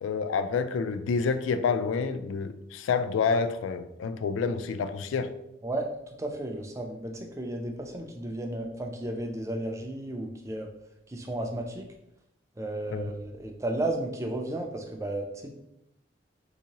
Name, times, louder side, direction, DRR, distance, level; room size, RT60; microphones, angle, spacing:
voice 1, 0.0-5.3 12.9-13.1, left 5 dB, 85° left, 11 dB, 0.3 m, -28 dB
voice 2, 5.6-10.7 11.1-11.8 12.6-15.5, right 1 dB, 15° right, 2 dB, 0.3 m, -33 dB
3.5 x 2.8 x 2.8 m, 0.82 s
head